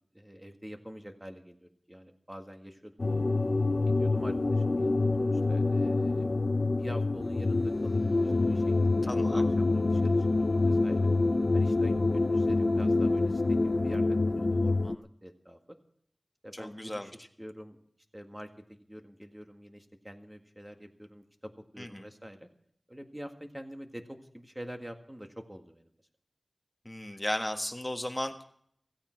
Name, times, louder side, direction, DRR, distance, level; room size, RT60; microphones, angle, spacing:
voice 1, 0.1-3.2 3.9-6.3 6.7-11.1 11.5-15.8 16.4-17.1 17.4-17.8 18.1-22.5 22.9-25.9, equal, 10° right, 5 dB, 1.8 m, -46 dB
sound 1, 3.0-15.0, left 3 dB, 55° left, 0.6 m, -26 dB
voice 2, 9.1-9.4 16.5-17.1 21.8-22.0 26.8-28.4, left 1 dB, 10° left, 5 dB, 1.6 m, -35 dB
16.0 x 15.5 x 4.6 m, 0.66 s
wide cardioid pair, 70°, 0 cm